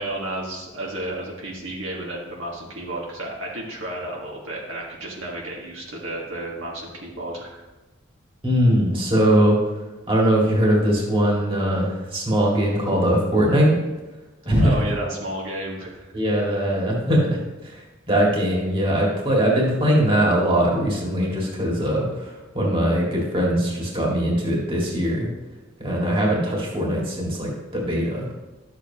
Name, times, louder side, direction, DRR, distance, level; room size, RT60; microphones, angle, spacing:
voice 1, 0.0-7.6 14.6-16.1, right 1 dB, 70° right, -3 dB, 1.6 m, -32 dB
voice 2, 8.4-9.6 10.1-13.7 14.4-14.7 16.1-25.3 25.8-28.3, equal, 25° right, -4 dB, 2.0 m, -21 dB
12.5 x 7.3 x 2.9 m, 1.1 s
head